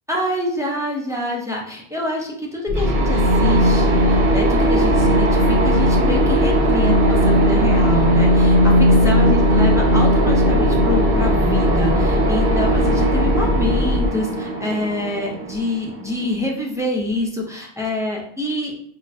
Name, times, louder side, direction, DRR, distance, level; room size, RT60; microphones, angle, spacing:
voice 1, 0.1-18.7, left 1 dB, 5° right, -2 dB, 0.4 m, -26 dB
sound 1, 2.7-14.1, left 2 dB, 80° left, 0.8 m, -21 dB
sound 2, 2.8-16.4, right 1 dB, 75° right, 1.0 m, -19 dB
5.1 x 2.2 x 2.5 m, 0.66 s
omnidirectional pair, 1.0 m